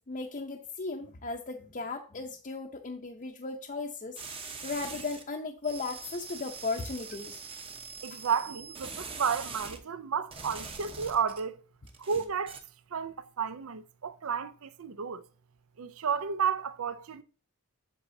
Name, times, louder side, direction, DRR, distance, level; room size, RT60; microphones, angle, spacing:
voice 1, 0.0-4.2 4.6-7.4 8.1-8.2, left 3 dB, 40° left, 0.7 m, -36 dB
sound 1, 4.2-5.2 5.6-9.8 10.3-11.4 11.9-12.6, right 4 dB, 25° right, 0.9 m, -43 dB
voice 2, 8.0-11.6 12.0-12.6 12.9-15.2 15.8-17.2, right 6 dB, 70° right, 0.6 m, -32 dB
8.2 x 7.2 x 2.7 m
head